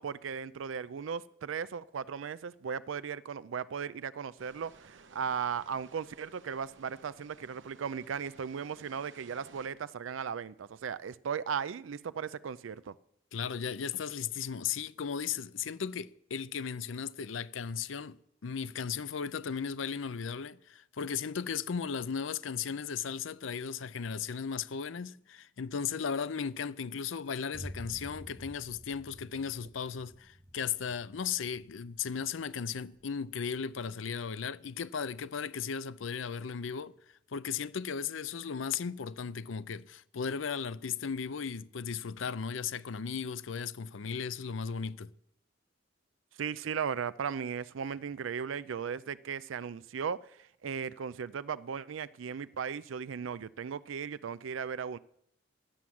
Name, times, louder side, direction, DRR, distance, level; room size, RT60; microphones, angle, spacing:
voice 1, 0.0-12.9 46.4-50.2 50.6-55.0, right 7 dB, 90° right, 0.4 m, -37 dB
sound 1, 4.4-9.7, right 4 dB, 75° right, 0.9 m, -57 dB
voice 2, 13.3-36.9 37.3-45.1, left 6 dB, 85° left, 0.5 m, -36 dB
Boom, 27.5-35.4, equal, 20° right, 1.0 m, -51 dB
11.5 x 7.7 x 7.1 m
head